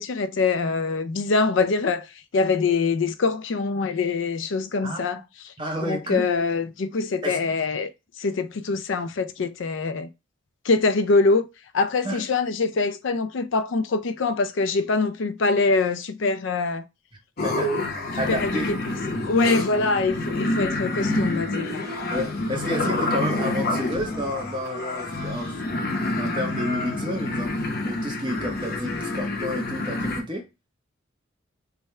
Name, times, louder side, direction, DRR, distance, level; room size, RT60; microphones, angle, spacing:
voice 1, 0.0-7.9 8.2-10.1 10.6-11.5 11.7-16.9 18.1-18.8 19.1-21.9, left 3 dB, 70° left, 0.4 m, -24 dB
voice 2, 5.6-6.3 7.2-7.4 12.0-12.2 17.4-17.7 18.2-18.8 22.1-25.5 26.2-30.5, equal, 25° right, 0.8 m, -30 dB
sound 1, 17.4-30.2, left 2 dB, 50° left, 0.8 m, -28 dB
sound 2, 19.6-25.5, equal, 65° right, 1.0 m, -41 dB
3.5 x 2.2 x 4.1 m
head